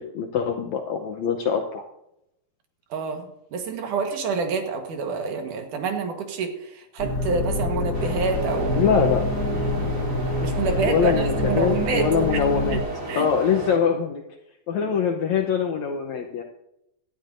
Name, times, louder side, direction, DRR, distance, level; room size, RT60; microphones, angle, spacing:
voice 1, 0.0-1.8 8.7-9.2 10.8-12.8 13.1-14.2 14.7-16.4, left 6 dB, 75° left, 3 dB, 1.7 m, -23 dB
voice 2, 2.9-8.9 9.5-9.9 10.4-12.4 12.7-12.8 13.1-13.3, right 5 dB, 65° right, 4 dB, 2.8 m, -28 dB
sound 1, 7.0-12.8, left 2 dB, 35° left, 2.1 m, -26 dB
sound 2, 7.9-13.8, right 2 dB, 30° right, 1.9 m, -33 dB
18.0 x 12.5 x 2.7 m, 0.82 s
omnidirectional pair, 4.3 m